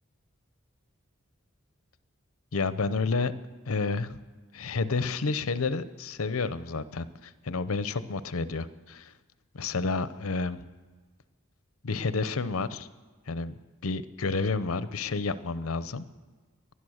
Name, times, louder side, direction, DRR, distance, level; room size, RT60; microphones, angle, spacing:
voice 1, 2.5-3.3 3.7-4.2 4.5-9.1 9.5-10.6 11.8-12.9 13.3-13.5 13.8-16.0, left 4 dB, 85° left, 14 dB, 0.8 m, -30 dB
20.0 x 11.5 x 6.4 m, 1.4 s
head